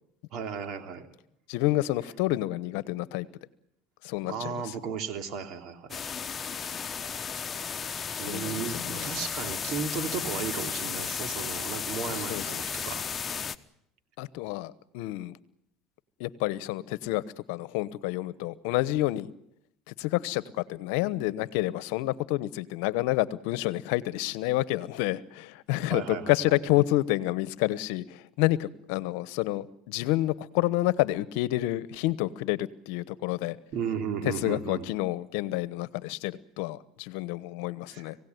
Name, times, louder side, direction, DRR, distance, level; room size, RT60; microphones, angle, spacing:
voice 1, 0.3-1.1 4.2-6.0 8.2-13.0 25.9-26.6 33.7-34.9 37.9-38.1, right 6 dB, 60° right, 7 dB, 2.9 m, -35 dB
voice 2, 1.5-3.3 4.0-4.6 8.2-9.0 12.3-12.4 14.2-15.4 16.2-17.2 17.5-19.3 20.0-33.6 34.2-38.2, left 17 dB, 75° left, 18 dB, 1.0 m, -29 dB
sound 1, 5.9-13.5, left 6 dB, 30° left, 1.1 m, -34 dB
26.0 x 17.0 x 9.4 m, 0.77 s
supercardioid pair, 85°, 0 cm